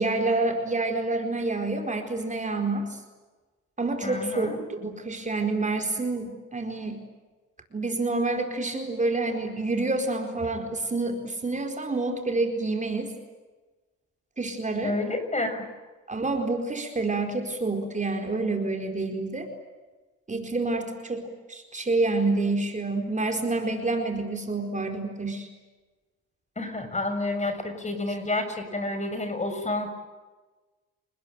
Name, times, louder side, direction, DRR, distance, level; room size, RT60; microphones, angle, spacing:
voice 1, 0.0-2.9 3.8-7.0 7.7-13.1 14.4-15.0 16.1-19.5 20.3-25.5, right 3 dB, 25° right, 4 dB, 4.6 m, -28 dB
voice 2, 4.0-4.6 14.8-15.7 26.6-29.9, left 2 dB, 25° left, 7 dB, 6.9 m, -29 dB
29.5 x 20.5 x 9.1 m, 1.2 s
cardioid pair, 90°, 30 cm